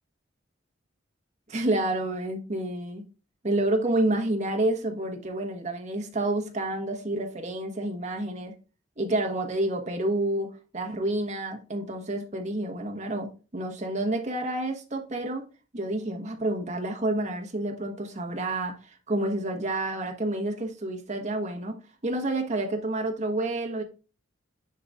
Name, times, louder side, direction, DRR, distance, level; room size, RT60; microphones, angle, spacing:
voice 1, 1.5-3.0 3.4-8.5 9.0-15.4 15.7-23.8, right 1 dB, 40° right, 1.1 m, -29 dB
9.8 x 4.0 x 2.4 m
head